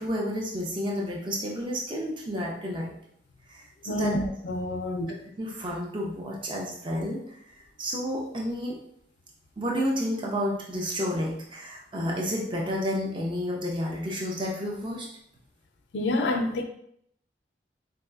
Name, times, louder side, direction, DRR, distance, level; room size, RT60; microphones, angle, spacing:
voice 1, 0.0-2.9 3.5-3.6 3.9-4.1 5.4-7.2 7.8-8.8 9.6-15.1, equal, 30° right, -2 dB, 0.6 m, -30 dB
voice 2, 3.9-5.2 15.9-16.6, left 1 dB, 90° left, 4 dB, 0.4 m, -28 dB
3.9 x 2.7 x 2.3 m, 0.70 s
head